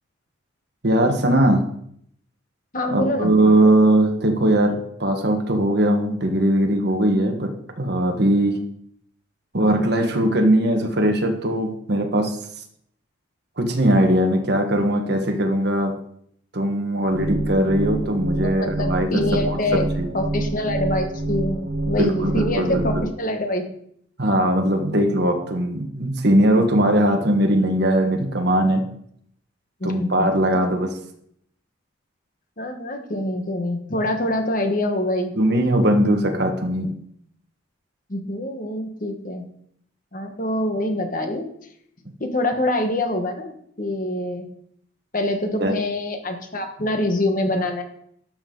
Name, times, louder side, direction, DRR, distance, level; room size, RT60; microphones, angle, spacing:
voice 1, 0.8-1.7 2.9-8.6 9.5-12.4 13.6-15.9 16.5-20.1 21.9-23.0 24.2-28.8 29.8-31.0 35.3-36.9 45.6-45.7, right 1 dB, 55° right, 4 dB, 1.4 m, -20 dB
voice 2, 2.7-3.3 18.4-19.9 20.1-21.6 21.8-23.6 29.8-30.3 32.6-35.3 38.1-39.5 40.1-41.5 42.2-44.5 45.1-47.8, left 1 dB, 40° left, 5 dB, 1.3 m, -25 dB
sound 1, 17.1-23.1, right 2 dB, 70° right, 1.5 m, -27 dB
12.5 x 6.0 x 3.9 m, 0.69 s
head